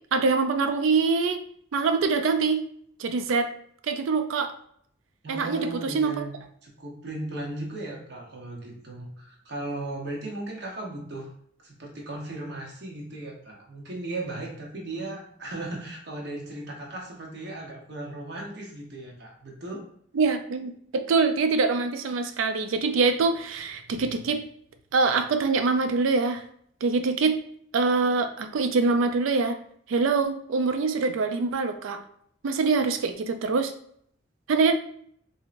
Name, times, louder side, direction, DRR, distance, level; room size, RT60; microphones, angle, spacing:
voice 1, 0.1-1.4 1.7-2.6 3.0-3.5 3.9-4.5 5.3-6.3 20.1-24.4 24.9-26.4 26.8-27.4 27.7-29.6 29.9-32.0 32.4-33.7 34.5-34.7, right 4 dB, 90° right, 8 dB, 0.4 m, -24 dB
voice 2, 5.2-6.3 6.6-11.3 11.6-19.8, right 2 dB, 55° right, -1 dB, 0.8 m, -36 dB
3.0 x 2.7 x 2.5 m, 0.66 s
head